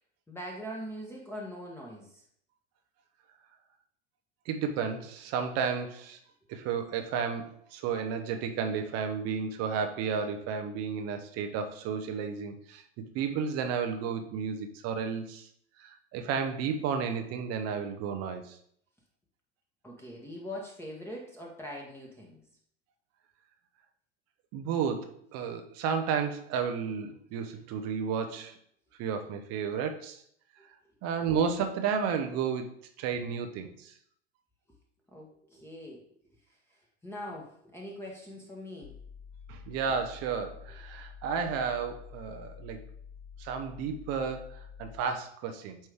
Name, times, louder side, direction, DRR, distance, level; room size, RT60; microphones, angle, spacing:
voice 1, 0.3-2.2 19.8-22.4 35.1-36.0 37.0-38.9, equal, 5° left, -2 dB, 1.3 m, -42 dB
voice 2, 4.5-6.2 6.5-12.8 13.1-15.5 15.8-18.6 24.5-28.5 29.0-30.2 31.0-33.9 39.5-42.8 43.4-45.8, right 6 dB, 45° right, 6 dB, 0.9 m, -32 dB
sound 1, 38.8-45.0, left 7 dB, 30° left, 0.9 m, -48 dB
8.8 x 3.1 x 3.5 m, 0.64 s
hypercardioid pair, 85°, 35 cm